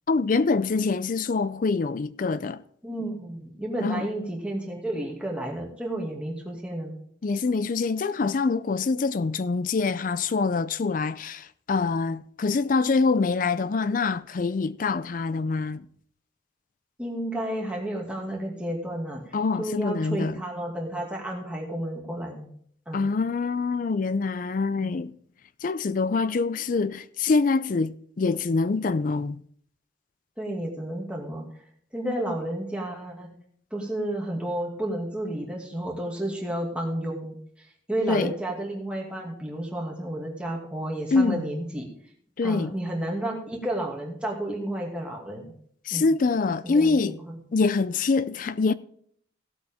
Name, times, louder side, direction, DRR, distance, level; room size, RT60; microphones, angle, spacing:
voice 1, 0.1-2.6 3.8-4.1 7.2-15.9 19.3-20.4 22.9-25.1 25.6-29.4 38.1-38.3 41.1-41.4 42.4-42.7 45.9-47.2 47.5-48.7, left 4 dB, 45° left, 0.4 m, -25 dB
voice 2, 2.8-6.9 17.0-22.5 22.9-23.0 24.7-24.9 30.4-31.4 31.9-33.3 33.7-41.9 42.4-45.5 45.9-46.0 46.5-47.3, right 1 dB, 5° right, 2.3 m, -32 dB
16.5 x 8.2 x 3.6 m
head